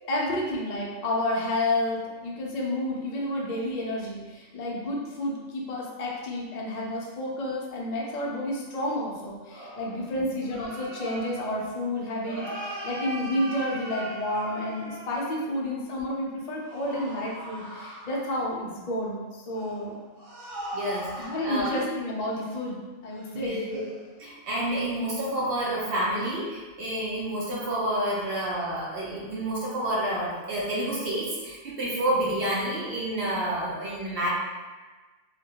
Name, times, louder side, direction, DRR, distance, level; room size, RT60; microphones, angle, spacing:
voice 1, 0.1-20.0 21.2-23.6, left 1 dB, 70° left, -3 dB, 0.4 m, -30 dB
sound 1, 9.5-15.6 16.6-18.4 19.5-21.9 22.3-22.4 23.1-23.4 23.7-24.1 24.5-24.7, right 1 dB, 75° right, 1.3 m, -39 dB
voice 2, 20.7-21.8 23.3-23.8 24.2-34.3, right 1 dB, 60° right, -5 dB, 0.7 m, -29 dB
2.3 x 2.1 x 2.7 m, 1.3 s
omnidirectional pair, 1.2 m